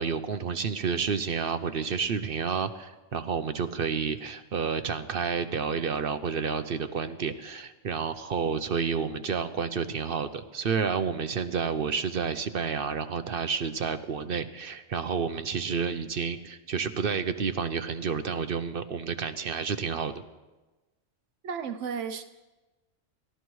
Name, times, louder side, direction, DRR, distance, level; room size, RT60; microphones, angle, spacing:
voice 1, 0.0-20.1, right 6 dB, 55° right, 10 dB, 0.8 m, -30 dB
voice 2, 21.4-22.2, right 6 dB, 85° right, 8 dB, 1.1 m, -33 dB
30.0 x 13.5 x 3.1 m, 1.2 s
omnidirectional pair, 1.2 m